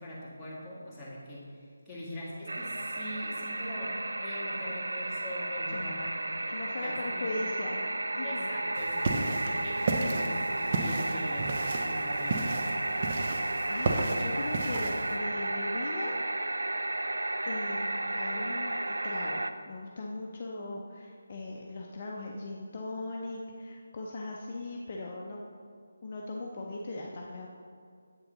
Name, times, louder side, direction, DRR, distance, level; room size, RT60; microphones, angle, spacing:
voice 1, 0.0-6.3 6.7-7.6 8.2-11.5 11.8-12.5, left 1 dB, ahead, -14 dB, 2.0 m, -42 dB
sound 1, 2.5-19.5, right 2 dB, 70° right, 0.4 m, -33 dB
voice 2, 5.7-6.0 6.5-7.9 8.2-8.5 13.7-16.2 17.4-25.4 26.0-27.5, left 2 dB, 35° left, -2 dB, 0.7 m, -39 dB
sound 2, 8.7-15.2, right 3 dB, 35° right, 0.7 m, -33 dB
8.2 x 6.9 x 3.9 m, 2.1 s
figure-of-eight pair, 155°, 0 cm